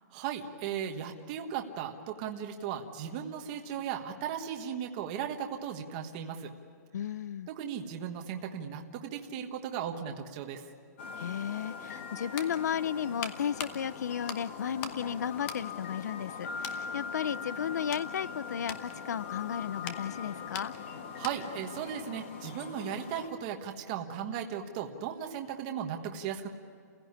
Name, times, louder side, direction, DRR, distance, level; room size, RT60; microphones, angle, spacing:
voice 1, 0.1-6.5 7.5-10.6 21.1-26.5, right 8 dB, 25° right, 3 dB, 1.4 m, -37 dB
voice 2, 6.9-7.5 11.2-20.7, left 8 dB, 65° left, 21 dB, 0.6 m, -34 dB
sound 1, 11.0-23.3, left 6 dB, 40° left, 1.9 m, -41 dB
sound 2, 12.4-15.1 15.4-16.3 16.6-16.9 17.4-21.6 21.9-22.1, left 7 dB, 20° left, 0.9 m, -43 dB
29.5 x 16.5 x 9.8 m, 2.3 s
hypercardioid pair, 175°, 10 cm